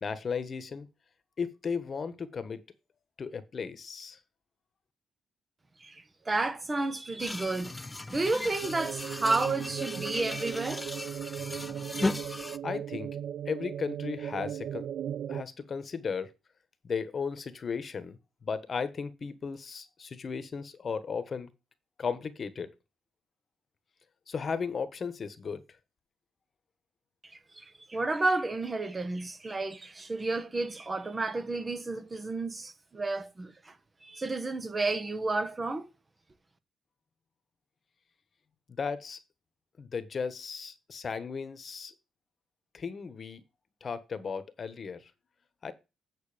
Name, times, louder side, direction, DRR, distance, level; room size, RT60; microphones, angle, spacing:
voice 1, 0.0-0.9 1.4-2.6 3.2-4.2 12.6-13.2 13.4-14.9 15.3-16.3 16.8-21.5 22.0-22.7 24.3-25.6 38.7-39.2 39.8-41.9 42.7-43.4 43.8-45.1 45.6-45.7, left 5 dB, 45° left, 1.4 m, -35 dB
voice 2, 5.8-7.8 8.1-10.8 27.5-33.7 34.0-35.9, right 3 dB, 25° right, 1.4 m, -31 dB
sound 1, 7.2-12.6, left 2 dB, 20° left, 0.6 m, -36 dB
sound 2, 8.6-15.4, right 9 dB, 65° right, 0.5 m, -37 dB
9.0 x 6.4 x 5.1 m
cardioid pair, 90°, 0 cm